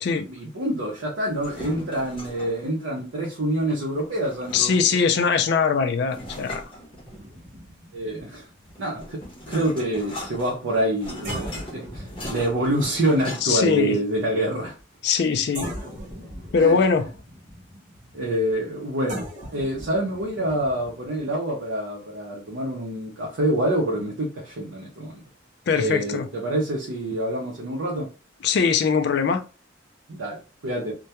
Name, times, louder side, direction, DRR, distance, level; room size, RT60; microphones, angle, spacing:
voice 1, 0.3-4.7 7.9-8.5 8.8-9.2 9.5-14.7 16.5-16.8 18.1-19.2 19.5-25.2 25.7-28.1 30.1-30.9, right 1 dB, 75° right, 0.6 m, -26 dB
sound 1, 1.3-2.6 4.1-5.1 6.1-7.5 8.6-13.7, left 1 dB, 25° left, 0.7 m, -39 dB
voice 2, 4.5-6.7 13.4-14.0 15.0-15.7 16.5-17.1 25.7-26.3 28.4-29.4, left 5 dB, 55° left, 0.3 m, -21 dB
sound 2, 7.1-10.3 10.8-10.9 11.2-15.2 15.5-21.3, equal, 40° right, 0.7 m, -40 dB
2.2 x 2.2 x 2.8 m
head